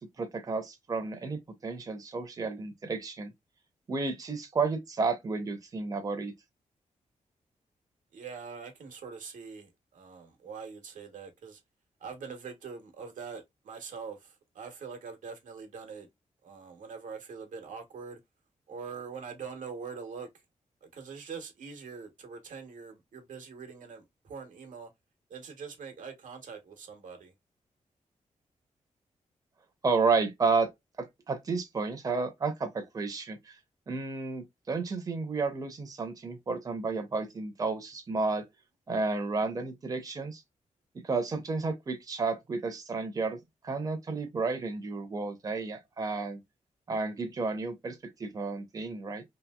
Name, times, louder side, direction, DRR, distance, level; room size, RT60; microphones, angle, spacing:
voice 1, 0.2-3.3 3.9-6.3 29.8-30.7 31.0-33.6 33.9-38.4 38.9-40.4 41.0-43.4 43.6-46.4 46.9-49.2, right 4 dB, 30° right, 0.6 m, -31 dB
voice 2, 8.1-11.6 12.0-16.1 16.4-18.2 18.7-20.3 20.8-24.9 25.3-27.3, right 5 dB, 85° right, 0.9 m, -43 dB
2.8 x 2.7 x 2.2 m
wide cardioid pair, 165°, 13 cm